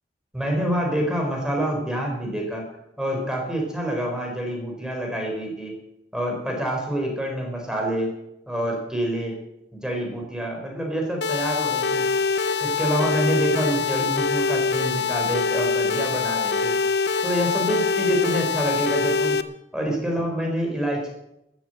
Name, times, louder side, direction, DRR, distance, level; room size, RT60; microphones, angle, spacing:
voice 1, 0.3-2.7 3.0-5.7 6.1-8.1 8.5-9.3 9.8-12.1 12.6-16.7 17.2-19.4 19.7-21.1, right 1 dB, 5° right, 0 dB, 4.0 m, -27 dB
sound 1, 11.2-19.4, left 5 dB, 70° left, 0.8 m, -24 dB
13.0 x 12.0 x 7.7 m, 0.84 s
head